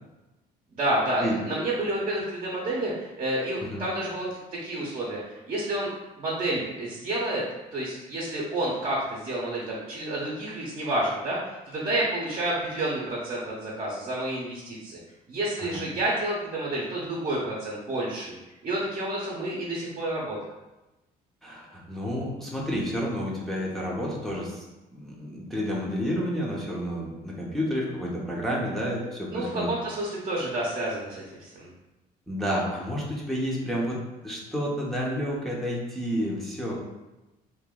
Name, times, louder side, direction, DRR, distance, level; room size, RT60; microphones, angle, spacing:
voice 1, 0.7-4.3 4.6-5.9 6.2-7.4 7.7-15.0 15.3-18.3 18.6-20.4 29.3-31.7, right 1 dB, 40° right, -4 dB, 0.9 m, -29 dB
voice 2, 21.4-24.6 24.9-29.7 32.3-36.8, equal, ahead, -5 dB, 0.8 m, -30 dB
3.0 x 2.6 x 3.8 m, 1.0 s
cardioid pair, 110°, 17 cm